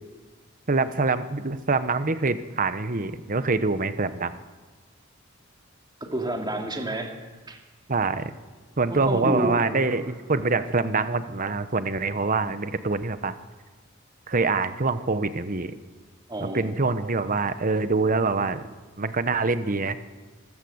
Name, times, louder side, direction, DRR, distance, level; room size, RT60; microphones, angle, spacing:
voice 1, 0.7-4.4 7.9-8.3 8.8-13.4 14.3-15.7 16.4-18.7 19.0-20.0, right 3 dB, 40° right, 11 dB, 1.1 m, -25 dB
voice 2, 6.0-7.2 7.5-7.6 8.9-10.0 16.3-16.9, right 1 dB, 20° right, 2 dB, 2.6 m, -30 dB
25.5 x 15.5 x 8.0 m, 1.3 s
head